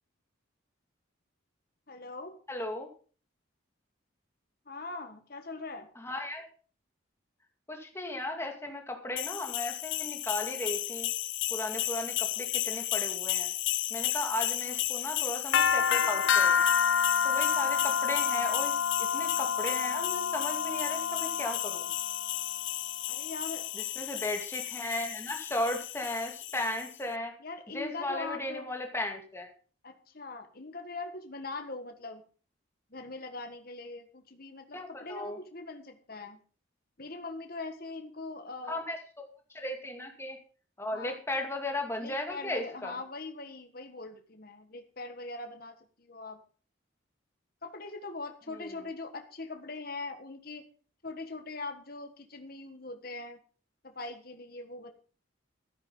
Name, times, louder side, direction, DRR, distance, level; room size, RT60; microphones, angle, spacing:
voice 1, 1.9-2.3 4.6-5.9 14.6-14.8 18.2-18.6 23.1-23.7 27.4-28.7 29.8-32.2 32.9-36.4 37.0-38.8 40.9-41.2 42.0-46.4 47.6-50.6 51.0-53.4 53.8-54.9, left 3 dB, 45° left, 6 dB, 1.6 m, -41 dB
voice 2, 2.5-2.9 6.0-6.5 7.7-11.1 11.5-13.5 13.9-16.6 17.2-18.7 19.0-21.9 23.7-27.3 27.7-29.5 34.7-35.4 38.7-39.2 39.5-40.4 40.8-43.0 48.5-48.8, left 1 dB, 10° left, 3 dB, 2.3 m, -36 dB
sound 1, 9.2-26.9, left 9 dB, 65° left, 0.6 m, -30 dB
13.5 x 9.8 x 5.5 m, 0.41 s
head